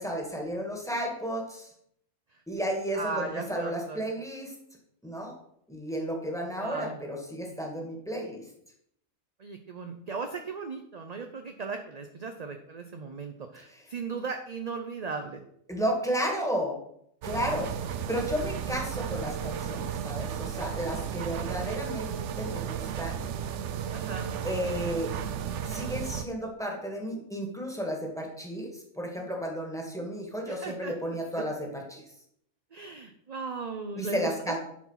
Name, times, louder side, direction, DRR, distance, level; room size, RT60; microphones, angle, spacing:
voice 1, 0.0-1.7 2.5-4.5 5.0-5.3 5.7-8.5 13.7-13.8 15.7-16.8 17.2-23.2 24.4-25.1 25.6-32.0 34.0-34.6, equal, ahead, -1 dB, 2.2 m, -33 dB
voice 2, 2.9-4.1 6.6-7.0 9.4-15.4 23.9-24.3 30.5-31.4 32.7-34.3, right 4 dB, 40° right, 5 dB, 0.6 m, -37 dB
sound 1, 17.2-26.2, right 8 dB, 65° right, 0.9 m, -34 dB
11.0 x 4.8 x 5.8 m, 0.72 s
omnidirectional pair, 1.4 m